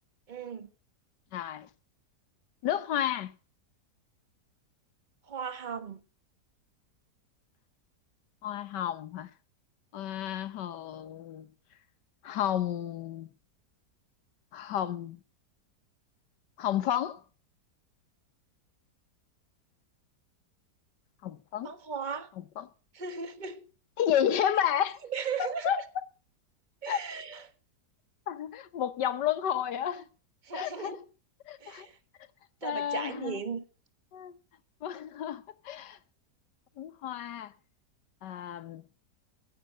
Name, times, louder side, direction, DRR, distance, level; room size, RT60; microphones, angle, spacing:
voice 1, 0.3-0.7 5.3-6.0 21.6-22.3 22.9-23.6 25.1-25.8 26.8-27.4 30.4-31.0 31.6-31.9 32.6-33.6, right 6 dB, 30° right, 1.4 m, -36 dB
voice 2, 1.3-1.7 2.6-3.3 8.4-9.3 9.9-11.5 12.2-13.3 14.5-15.2 16.6-17.2 21.2-21.7 22.6-22.7 24.0-25.0 25.4-25.8 26.9-27.0 28.3-30.0 30.5-31.0 31.5-31.9 32.6-33.4 34.1-34.3 34.8-36.0 36.8-37.5 38.2-38.8, left 10 dB, 80° left, 1.5 m, -31 dB
15.5 x 7.4 x 8.8 m
omnidirectional pair, 1.8 m